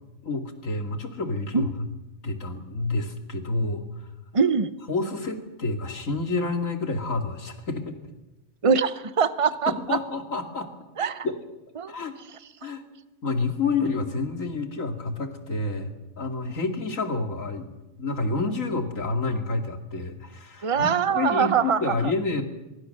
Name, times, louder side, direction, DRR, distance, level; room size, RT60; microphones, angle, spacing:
voice 1, 0.2-1.9 2.2-3.8 4.9-7.9 9.7-10.7 11.2-11.4 11.9-12.2 12.6-12.8 13.2-17.7 18.0-22.4, left 3 dB, 90° left, 5 dB, 2.9 m, -29 dB
voice 2, 4.3-4.8 8.6-10.0 11.0-11.3 11.8-11.9 20.6-21.9, right 6 dB, 30° right, 14 dB, 0.8 m, -23 dB
23.0 x 23.0 x 6.7 m, 1.0 s
omnidirectional pair, 1.3 m